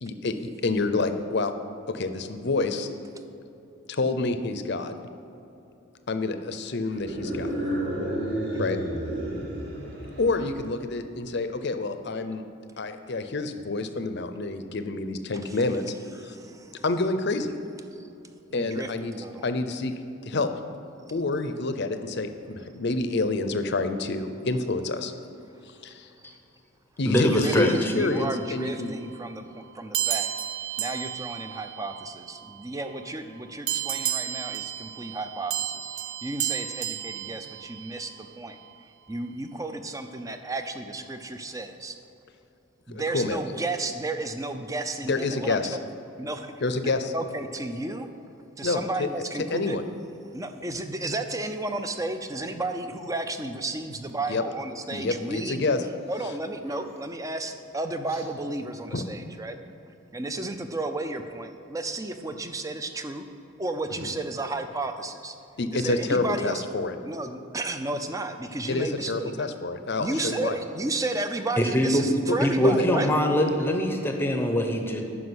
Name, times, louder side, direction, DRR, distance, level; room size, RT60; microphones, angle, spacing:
voice 1, 0.0-0.3 0.6-1.6 1.9-2.9 3.9-5.0 6.1-7.5 8.6-8.8 10.2-12.4 12.8-16.3 16.8-17.5 18.5-19.1 19.4-19.9 20.2-20.5 21.1-25.1 25.8-26.1 27.0-28.9 42.9-43.4 45.1-45.8 46.6-47.1 48.6-49.1 49.5-49.8 54.3-54.4 54.9-55.8 58.9-59.1 65.6-66.9 68.7-70.5 72.3-72.4 72.6-72.9, left 3 dB, 55° left, 9 dB, 0.7 m, -28 dB
sound 1, 6.9-10.5, right 1 dB, 55° right, 2.5 m, -31 dB
voice 2, 16.2-16.8 18.0-18.1 18.5-19.4 26.2-26.4 27.1-30.3 30.8-42.0 42.9-45.8 46.2-48.1 48.6-49.8 50.3-55.7 56.1-59.6 60.1-63.2 63.6-65.4 65.7-66.6 67.0-69.5 70.0-73.2, right 2 dB, 15° right, 8 dB, 0.5 m, -33 dB
voice 3, 27.1-27.9 71.6-72.0 72.4-75.0, equal, 10° left, 3 dB, 0.8 m, -23 dB
sound 2, 27.4-28.7 29.9-32.6 33.7-38.2, right 11 dB, 80° right, 0.6 m, -33 dB
sound 3, 56.0-56.2 56.5-57.2 58.0-58.3, right 2 dB, 30° right, 1.9 m, -48 dB
9.6 x 6.2 x 7.9 m, 2.8 s
head